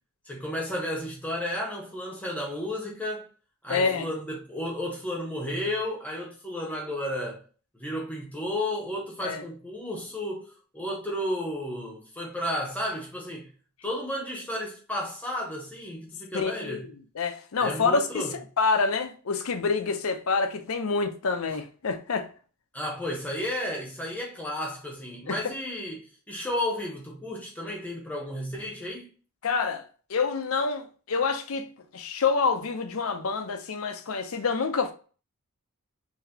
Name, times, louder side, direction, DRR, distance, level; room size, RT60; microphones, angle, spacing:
voice 1, 0.3-3.3 3.6-7.4 7.8-13.5 13.8-16.9 17.6-18.3 22.7-29.1, left 1 dB, 5° left, 0.9 m, -33 dB
voice 2, 3.7-4.1 9.2-9.4 16.3-16.9 17.1-18.2 18.6-22.3 25.3-25.4 29.4-29.8 30.1-34.9, left 4 dB, 70° left, 0.6 m, -27 dB
3.9 x 2.7 x 2.7 m
head